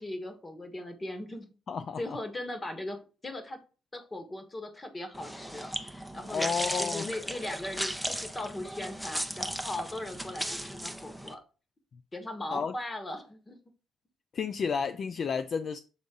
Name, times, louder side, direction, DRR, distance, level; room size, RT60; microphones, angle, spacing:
voice 1, 0.0-1.6 2.0-3.6 3.9-6.5 6.8-11.4 12.1-13.6, left 1 dB, 25° left, 1.5 m, -39 dB
voice 2, 1.7-2.0 6.3-7.1 12.5-12.7 14.3-15.8, left 6 dB, 55° left, 0.4 m, -31 dB
sound 1, 5.1-11.3, equal, 5° left, 0.8 m, -36 dB
7.3 x 3.8 x 3.8 m
cardioid pair, 90°, 0 cm